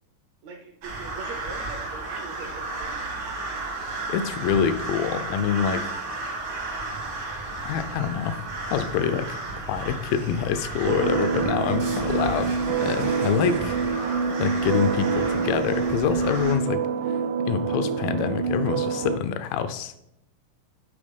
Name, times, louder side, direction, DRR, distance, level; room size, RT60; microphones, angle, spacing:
voice 1, 0.4-3.0, right 4 dB, 75° right, 2 dB, 1.7 m, -41 dB
sound 1, 0.8-16.5, right 2 dB, 55° right, 1.0 m, -33 dB
voice 2, 4.1-6.3 7.6-8.4 8.7-9.4 9.7-13.8 14.4-17.2 17.5-19.9, left 8 dB, 90° left, 11 dB, 2.4 m, -26 dB
sound 2, 10.9-19.2, right 6 dB, 90° right, 1.7 m, -26 dB
8.6 x 4.3 x 5.2 m, 0.83 s
omnidirectional pair, 4.0 m